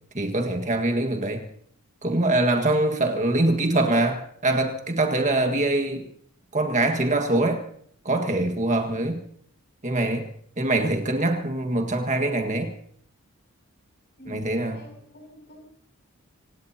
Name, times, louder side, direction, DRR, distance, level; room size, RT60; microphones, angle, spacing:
voice 1, 0.1-1.4 2.0-6.1 6.5-7.6 8.1-9.2 9.8-10.3 10.6-12.7 14.3-14.8, right 2 dB, 35° right, 5 dB, 1.7 m, -23 dB
voice 2, 14.2-15.6, equal, 50° left, 3 dB, 7.2 m, -45 dB
25.5 x 19.5 x 2.9 m, 0.63 s
head